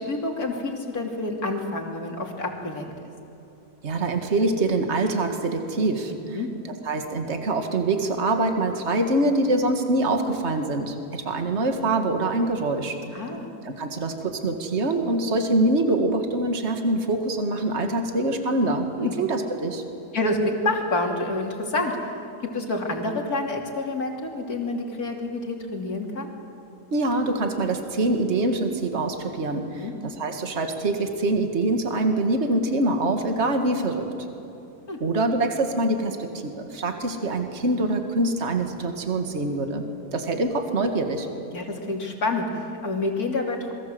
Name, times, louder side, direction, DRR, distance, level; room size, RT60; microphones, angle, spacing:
voice 1, 0.0-2.9 6.3-6.5 13.1-13.6 19.0-19.2 20.1-22.0 22.4-26.3 29.6-29.9 34.9-35.0 41.5-43.7, left 2 dB, 65° left, 2 dB, 3.3 m, -28 dB
voice 2, 3.8-6.1 6.6-13.0 13.6-19.8 26.9-34.1 35.0-39.8 40.1-41.3, right 2 dB, 40° right, 5 dB, 2.1 m, -24 dB
27.5 x 22.0 x 7.9 m, 2.9 s
omnidirectional pair, 1.7 m